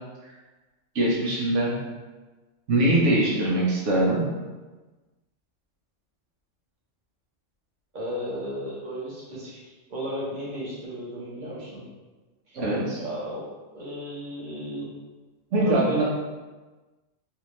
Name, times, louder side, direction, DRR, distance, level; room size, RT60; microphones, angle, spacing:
voice 1, 0.9-1.7 2.7-4.2 12.5-13.0 15.5-16.0, right 1 dB, 70° right, -5 dB, 1.1 m, -22 dB
voice 2, 7.9-9.6 9.9-11.9 12.5-12.6 12.9-13.4 13.7-14.9 15.5-16.0, equal, 45° right, -6 dB, 0.9 m, -34 dB
3.4 x 2.7 x 3.0 m, 1.3 s
omnidirectional pair, 1.3 m